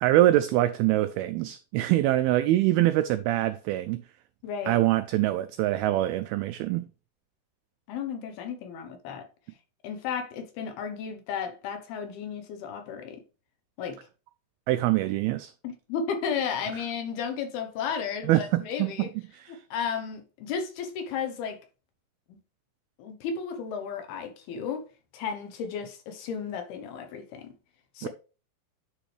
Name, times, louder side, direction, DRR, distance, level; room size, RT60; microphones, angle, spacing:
voice 1, 0.0-4.0 4.7-6.9 14.7-15.5 18.2-19.1 19.4-19.5 28.0-28.1, right 14 dB, 90° right, 2.1 m, -24 dB
voice 2, 4.4-4.8 7.9-9.2 9.8-13.2 13.8-14.0 15.6-19.1 19.5-21.6 22.3-22.4 23.0-24.9 25.1-27.5 27.9-28.1, left 6 dB, 70° left, 2.9 m, -33 dB
10.5 x 4.9 x 3.3 m
omnidirectional pair, 4.9 m